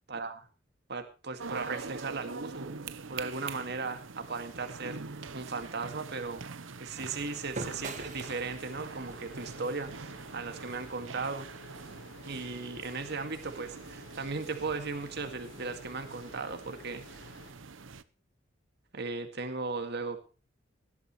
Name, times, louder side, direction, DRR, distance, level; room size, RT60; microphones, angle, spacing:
voice 1, 0.1-0.5 0.9-2.7 3.1-6.4 6.8-11.5 12.2-17.4 18.9-20.2, right 4 dB, 60° right, 7 dB, 2.1 m, -37 dB
sound 1, 1.4-18.0, right 4 dB, 85° right, 0.9 m, -44 dB
sound 2, 5.7-10.9, right 3 dB, 40° right, 1.9 m, -47 dB
sound 3, 7.2-17.5, left 2 dB, 85° left, 5.2 m, -53 dB
18.0 x 12.0 x 3.2 m, 0.34 s
head